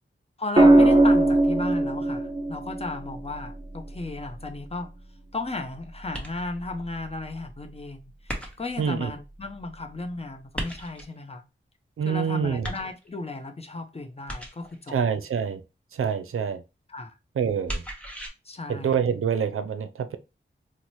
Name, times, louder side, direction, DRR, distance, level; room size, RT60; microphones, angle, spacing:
voice 1, 0.4-5.0 5.3-11.4 12.0-15.0 16.9-17.1 18.4-19.0, left 2 dB, 30° left, 0.6 m, -35 dB
sound 1, 0.6-4.7 6.4-6.8, right 2 dB, 25° right, 0.6 m, -21 dB
sound 2, 6.1-6.7 8.3-8.9 10.5-11.2 12.6-13.3 14.3-14.8 17.7-18.3, right 1 dB, 5° left, 0.9 m, -35 dB
voice 2, 8.8-9.1 12.0-12.7 14.9-15.6 15.9-16.6 17.4-17.8 18.7-20.2, right 7 dB, 85° right, 0.4 m, -26 dB
4.0 x 2.1 x 3.0 m
wide cardioid pair, 60°, 21 cm